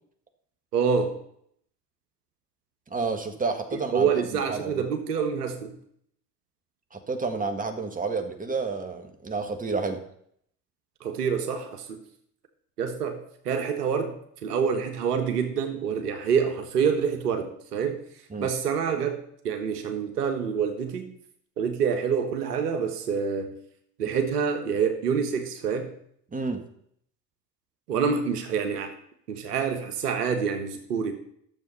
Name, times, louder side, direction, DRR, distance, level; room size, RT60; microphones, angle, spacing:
voice 1, 0.7-1.1 3.7-5.8 11.0-12.0 12.8-13.2 13.4-14.2 14.4-18.0 18.4-21.1 21.6-23.5 24.0-25.9 27.9-28.9 29.3-31.1, right 6 dB, 80° right, 6 dB, 1.5 m, -27 dB
voice 2, 2.9-4.1 4.5-4.7 6.9-10.0 18.3-18.5 26.3-26.6, right 4 dB, 15° right, 6 dB, 1.8 m, -30 dB
12.0 x 7.2 x 5.6 m, 0.68 s
hypercardioid pair, 65°, 47 cm